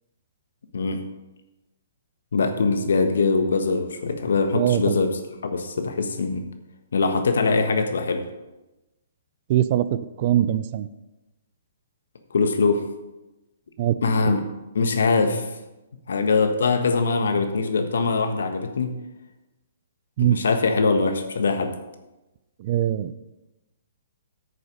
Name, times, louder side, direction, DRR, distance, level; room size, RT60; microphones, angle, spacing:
voice 1, 2.3-6.4 6.9-8.3 12.3-12.8 14.0-14.4 14.7-15.5 16.1-18.9 20.2-21.8, left 4 dB, 75° left, 7 dB, 1.3 m, -22 dB
voice 2, 4.5-5.0 9.5-10.9 13.8-14.0 14.3-14.4 20.2-20.4 22.6-23.2, right 11 dB, 45° right, 14 dB, 0.5 m, -22 dB
9.3 x 6.6 x 5.3 m, 1.0 s
hypercardioid pair, 140°, 0 cm